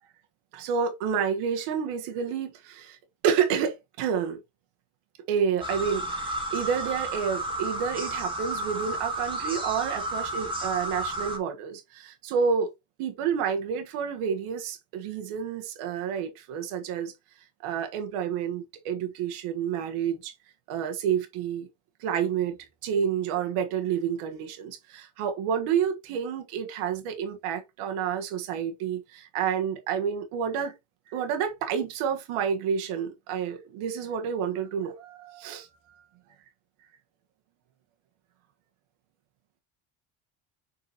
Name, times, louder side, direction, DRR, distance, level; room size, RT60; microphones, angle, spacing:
voice 1, 0.5-3.0 3.2-4.4 5.3-12.7 13.0-17.1 17.6-20.3 20.7-21.7 22.0-22.6 22.8-30.7 31.1-35.7, right 7 dB, 85° right, 1.6 m, -29 dB
sound 1, 5.6-11.4, right 1 dB, 10° right, 2.3 m, -32 dB
7.0 x 4.6 x 2.9 m
supercardioid pair, 85°, 50 cm